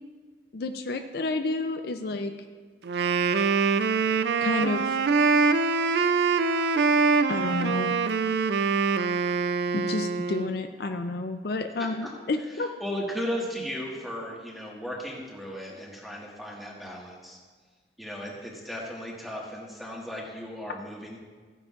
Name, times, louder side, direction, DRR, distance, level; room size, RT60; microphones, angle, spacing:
voice 1, 0.5-2.3 4.4-5.0 7.3-8.0 9.7-12.7, left 2 dB, 60° left, 6 dB, 0.5 m, -30 dB
Wind instrument woodwind instrument, 2.9-10.6, right 4 dB, 65° right, 0.4 m, -24 dB
voice 2, 11.8-12.1 12.6-17.4 18.0-21.2, equal, ahead, -3 dB, 1.6 m, -36 dB
15.0 x 9.8 x 2.5 m, 1.5 s
head